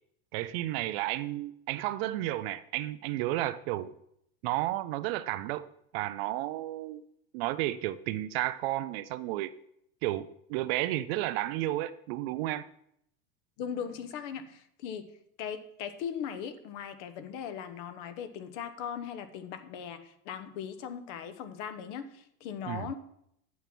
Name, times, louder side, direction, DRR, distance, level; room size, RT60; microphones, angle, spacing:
voice 1, 0.3-3.9 4.4-5.7 5.9-7.0 7.3-9.5 10.0-12.7 22.7-22.9, right 15 dB, 45° right, 0.5 m, -32 dB
voice 2, 13.6-15.1 15.4-22.9, left 8 dB, 55° left, 1.2 m, -39 dB
9.3 x 7.4 x 6.0 m
supercardioid pair, 155°, 42 cm